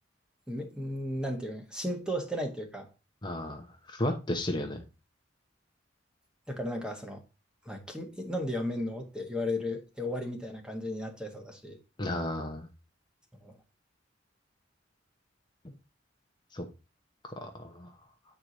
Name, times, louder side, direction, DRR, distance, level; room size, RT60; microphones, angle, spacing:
voice 1, 0.5-2.9 4.5-4.7 6.5-7.2 7.6-11.8 13.4-13.5, left 1 dB, 5° right, 1.3 m, -35 dB
voice 2, 3.2-4.8 12.0-12.7 15.6-15.7 16.5-16.7 17.2-17.9, left 1 dB, 25° left, 0.9 m, -34 dB
8.3 x 4.7 x 4.0 m
head